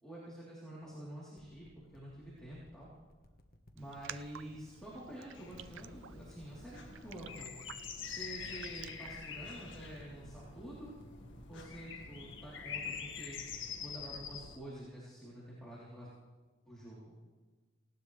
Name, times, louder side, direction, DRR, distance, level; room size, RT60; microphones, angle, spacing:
voice 1, 0.0-2.9 3.7-7.6 8.1-10.9 11.5-16.1 16.7-17.2, right 1 dB, 5° left, -8 dB, 3.7 m, -48 dB
sound 1, 1.4-14.1 14.7-14.8, left 1 dB, 45° left, 1.4 m, -61 dB
Raindrop, 3.8-10.0, right 10 dB, 65° right, 0.5 m, -53 dB
sound 2, 5.3-14.6, left 6 dB, 65° left, 1.9 m, -45 dB
19.0 x 18.0 x 3.4 m, 1.3 s
head